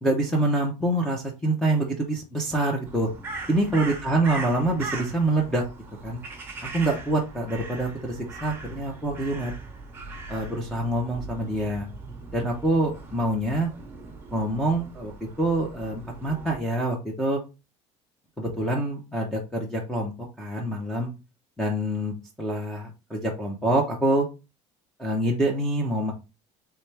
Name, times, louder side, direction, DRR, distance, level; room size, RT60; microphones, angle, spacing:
voice 1, 0.0-3.1 3.5-5.6 6.0-6.2 6.7-9.5 10.3-11.9 12.3-13.7 14.3-17.4 18.4-20.1 20.4-21.1 21.6-24.3 25.0-26.1, right 1 dB, 5° left, -1 dB, 0.7 m, -26 dB
Crow, 2.9-16.6, right 3 dB, 15° right, 1.0 m, -40 dB
4.3 x 3.4 x 3.3 m, 0.28 s
cardioid pair, 170°, 13 cm